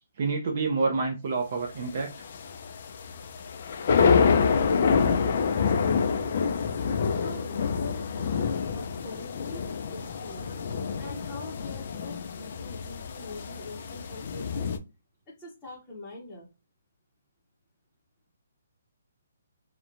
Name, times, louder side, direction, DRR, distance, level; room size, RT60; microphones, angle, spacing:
voice 1, 0.2-2.1 10.4-10.5, right 4 dB, 45° right, 0.5 m, -28 dB
sound 1, 1.7-14.8, left 6 dB, 45° left, 0.4 m, -27 dB
voice 2, 5.5-6.3 7.2-9.6 9.9-10.4 11.0-14.7 15.4-16.5, left 2 dB, 10° left, 0.7 m, -43 dB
2.9 x 2.1 x 2.5 m
hypercardioid pair, 165°, 0 cm